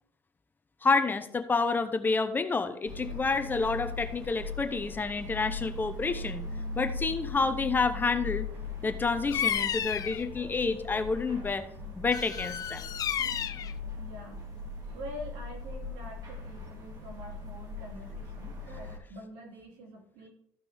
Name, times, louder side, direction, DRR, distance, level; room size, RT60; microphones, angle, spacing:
voice 1, 0.8-6.4 6.7-8.5 8.8-11.7 11.9-12.9, left 4 dB, 25° left, 10 dB, 0.9 m, -29 dB
sound 1, 2.8-19.0, left 3 dB, 50° right, 3.2 m, -40 dB
Bird vocalization bird call bird song, 9.3-10.3 12.1-13.7, left 9 dB, 45° left, 0.6 m, -32 dB
voice 2, 13.2-13.5 14.0-14.4 14.9-20.3, equal, 85° right, 0 dB, 3.2 m, -45 dB
14.0 x 5.8 x 3.5 m, 0.69 s
cardioid pair, 100°, 8 cm